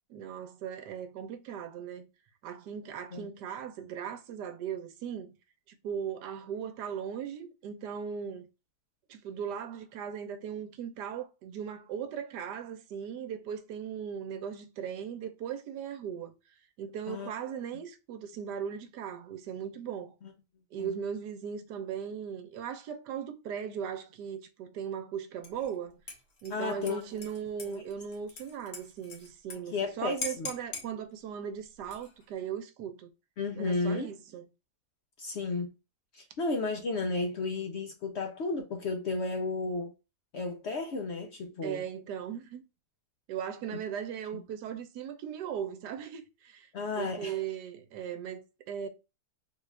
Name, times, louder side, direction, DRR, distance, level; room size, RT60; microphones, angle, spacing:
voice 1, 0.1-2.1 2.4-5.3 5.7-8.4 9.1-16.3 16.8-20.1 20.7-26.0 26.4-33.1 33.6-34.4 41.6-42.6 43.3-46.7 46.9-48.9, right 8 dB, 85° right, 1.2 m, -38 dB
Dishes pots and pans / Liquid, 25.4-25.7 26.1-29.6 29.8-29.9 30.2-30.9 31.8-32.3, left 3 dB, 90° left, 1.8 m, -42 dB
voice 2, 26.5-27.0 27.7-27.8 29.7-30.5 33.4-34.1 35.2-35.7 36.1-39.9 40.3-41.8 44.3-44.4 46.7-47.3, left 3 dB, 70° left, 0.6 m, -33 dB
3.8 x 2.4 x 3.2 m
omnidirectional pair, 1.8 m